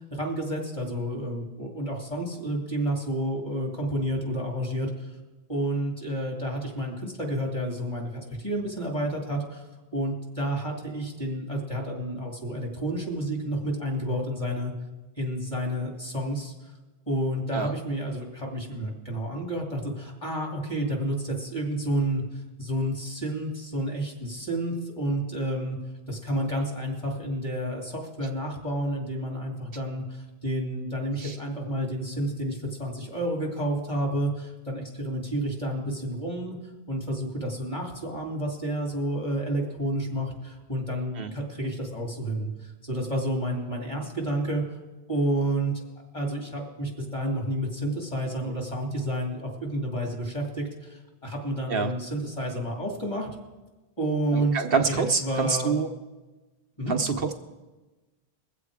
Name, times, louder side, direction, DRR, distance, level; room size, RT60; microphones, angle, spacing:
voice 1, 0.1-5.2 5.5-9.6 9.9-14.7 15.2-16.5 17.1-22.2 22.6-25.8 26.1-36.6 36.9-44.6 45.1-45.8 46.1-53.3 54.0-54.6 54.8-55.7 56.8-56.9, right 1 dB, 30° left, 0 dB, 2.8 m, -30 dB
voice 2, 54.3-55.9 56.9-57.3, right 5 dB, 65° right, 5 dB, 0.9 m, -26 dB
21.5 x 7.6 x 4.9 m, 1.2 s
omnidirectional pair, 1.1 m